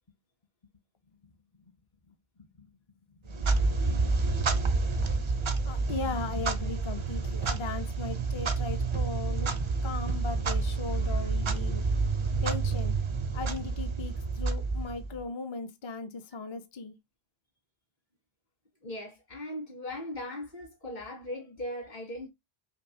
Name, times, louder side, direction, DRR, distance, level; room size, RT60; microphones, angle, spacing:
voice 1, 2.1-2.7 3.1-3.6 5.6-9.5 9.8-11.8 12.4-12.9 13.3-17.0, left 4 dB, 40° left, 0.4 m, -38 dB
Clock, 3.3-15.2, right 4 dB, 45° right, 0.4 m, -29 dB
sound 1, 6.2-13.7, right 9 dB, 85° left, 1.4 m, -48 dB
voice 2, 18.8-22.3, left 1 dB, 60° left, 2.2 m, -39 dB
5.2 x 2.4 x 2.6 m
omnidirectional pair, 1.0 m